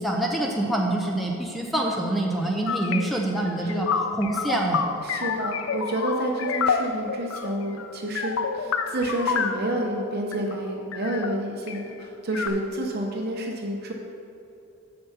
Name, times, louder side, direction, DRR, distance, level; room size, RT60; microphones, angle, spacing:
voice 1, 0.0-4.8, right 1 dB, ahead, 0 dB, 0.6 m, -26 dB
sound 1, 2.7-9.8 10.3-10.6 10.9-11.8 12.3-12.5, left 6 dB, 70° left, 0.5 m, -29 dB
voice 2, 5.0-13.9, right 1 dB, 50° right, 0 dB, 0.8 m, -29 dB
7.1 x 6.9 x 5.6 m, 2.8 s
head